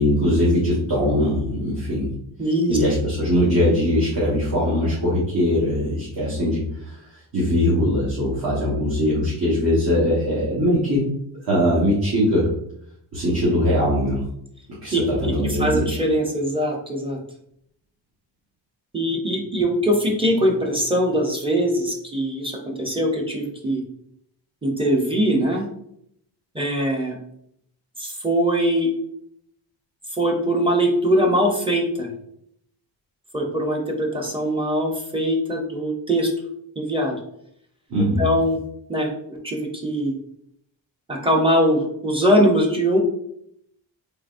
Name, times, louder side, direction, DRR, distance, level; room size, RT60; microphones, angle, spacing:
voice 1, 0.0-2.1 2.7-7.0 7.3-11.1 11.4-12.5 13.1-14.2 14.8-15.8 37.9-38.3, equal, 50° right, -8 dB, 1.4 m, -21 dB
voice 2, 2.4-2.8 14.9-17.2 18.9-23.8 24.6-25.7 26.5-27.2 28.0-28.9 30.2-32.1 33.3-36.3 36.8-37.2 38.2-38.6 38.9-40.1 41.1-43.0, equal, 10° right, 1 dB, 0.7 m, -22 dB
3.8 x 3.5 x 2.5 m, 0.71 s
wide cardioid pair, 145°, 45 cm